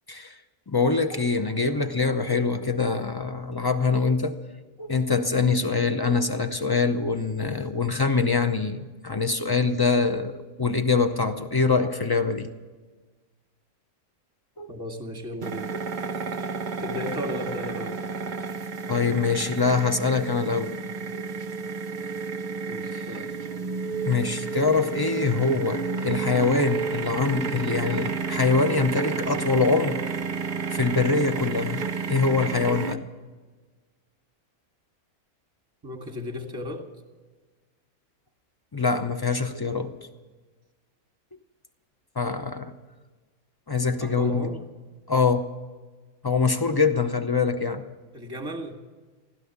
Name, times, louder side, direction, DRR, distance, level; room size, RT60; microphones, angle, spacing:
voice 1, 0.7-4.3 4.8-12.5 14.6-14.7 18.9-20.8 21.1-21.3 22.9-23.1 24.0-30.0 30.7-33.0 38.7-40.0 42.2-42.7 43.7-44.5 45.1-45.5 46.2-47.9, left 4 dB, 30° left, 8 dB, 0.4 m, -24 dB
voice 2, 14.7-15.7 16.8-18.0 22.7-23.3 35.8-36.9 44.0-44.6 48.1-48.8, left 1 dB, 15° right, 4 dB, 1.9 m, -35 dB
sound 1, 15.4-32.9, right 5 dB, 40° right, 0.7 m, -31 dB
16.0 x 12.0 x 7.2 m, 1.3 s
omnidirectional pair, 1.6 m